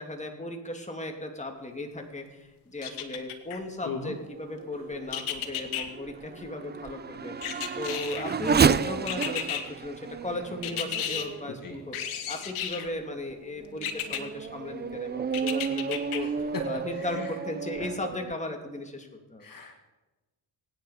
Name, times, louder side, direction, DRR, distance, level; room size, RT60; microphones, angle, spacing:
voice 1, 0.0-19.5, left 2 dB, 15° left, 3 dB, 2.8 m, -36 dB
sound 1, 2.8-3.6 5.1-5.8 7.4-8.4 9.1-9.6 10.6-11.3 11.9-12.9 13.8-14.2 15.3-16.2 16.7-16.8, left 9 dB, 85° left, 1.7 m, -33 dB
Race car auto racing / Accelerating revving vroom, 4.3-12.2 12.9-13.0 13.6-18.3, right 6 dB, 20° right, 0.4 m, -31 dB
voice 2, 17.0-17.3 17.8-17.9 19.4-19.7, left 5 dB, 45° left, 3 dB, 2.0 m, -36 dB
24.0 x 9.6 x 5.1 m, 1.1 s
cardioid pair, 90°, 49 cm